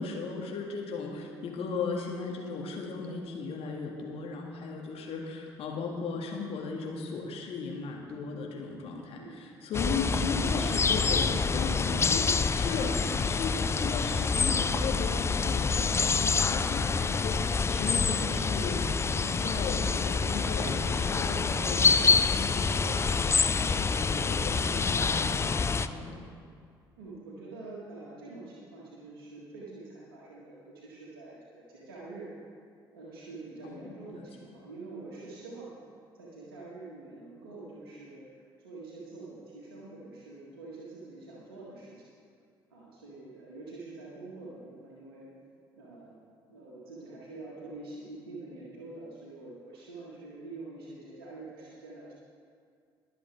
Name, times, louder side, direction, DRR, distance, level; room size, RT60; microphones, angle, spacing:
voice 1, 0.0-18.8 19.1-26.2 33.6-34.2, left 4 dB, 50° left, 0 dB, 1.8 m, -36 dB
sound 1, 9.7-25.9, left 5 dB, 20° left, 0.4 m, -27 dB
voice 2, 27.0-32.3 32.9-35.7 36.1-42.1 42.7-45.3 45.7-46.2 46.5-52.1, right 2 dB, 75° right, -5 dB, 1.8 m, -46 dB
22.0 x 7.4 x 3.6 m, 2.2 s
figure-of-eight pair, 50°, 12 cm